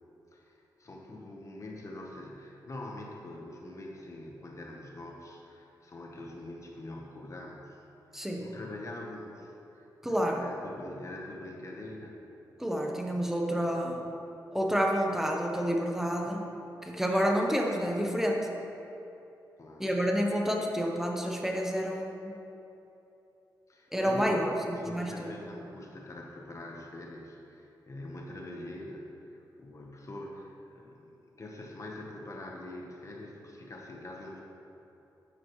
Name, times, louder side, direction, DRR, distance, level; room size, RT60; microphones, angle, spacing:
voice 1, 0.3-7.8 8.4-12.2 13.5-14.0 15.1-15.2 17.0-17.1 19.6-19.9 23.7-34.4, left 1 dB, 45° left, -1 dB, 1.1 m, -44 dB
voice 2, 8.1-8.5 10.0-10.5 12.6-14.0 14.5-16.4 16.8-18.5 19.8-22.4 23.9-25.3, equal, 5° right, 0 dB, 0.9 m, -29 dB
9.3 x 8.4 x 3.1 m, 2.9 s
cardioid pair, 85°, 8 cm